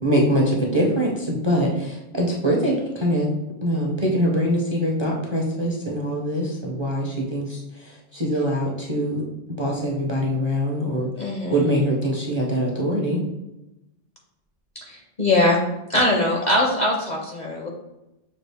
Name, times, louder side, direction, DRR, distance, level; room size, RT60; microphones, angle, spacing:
voice 1, 0.0-3.3 3.6-9.2 9.6-13.2, equal, 30° right, -2 dB, 0.6 m, -23 dB
voice 2, 11.2-11.7 14.9-15.6 15.9-17.7, left 1 dB, 45° left, 0 dB, 0.7 m, -21 dB
6.2 x 2.4 x 3.4 m, 0.93 s
omnidirectional pair, 1.3 m